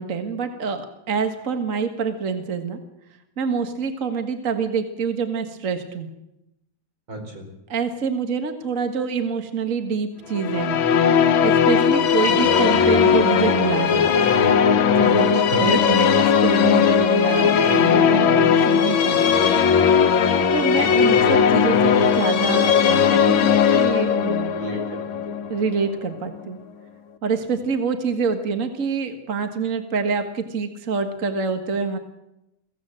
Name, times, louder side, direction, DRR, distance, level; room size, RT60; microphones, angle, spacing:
voice 1, 0.0-2.8 3.4-6.1 7.7-10.8 11.4-14.0 15.0-19.2 20.5-24.5 25.5-26.6 27.2-32.0, right 5 dB, 45° right, 7 dB, 1.9 m, -26 dB
voice 2, 7.1-7.5 15.1-15.9 24.5-25.4, right 2 dB, 85° right, 3 dB, 5.4 m, -33 dB
sound 1, 10.3-26.4, left 7 dB, 85° left, 1.9 m, -18 dB
23.5 x 16.0 x 7.7 m, 0.88 s
omnidirectional pair, 2.1 m